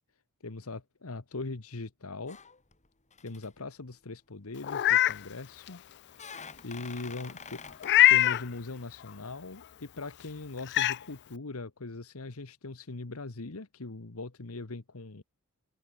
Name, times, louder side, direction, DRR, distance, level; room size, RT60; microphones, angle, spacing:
voice 1, 0.4-2.4 3.2-5.9 6.3-7.6 8.1-15.2, left 3 dB, 70° left, 1.2 m, -40 dB
sound 1, 2.3-2.9 3.1-3.5 4.8-5.4 6.1-8.0 8.2-8.4, left 5 dB, 35° left, 4.3 m, -47 dB
Meow, 4.6-5.2 5.7-5.8 7.8-8.4 10.0-10.1 10.7-11.0, left 13 dB, 50° left, 0.4 m, -22 dB
open air
head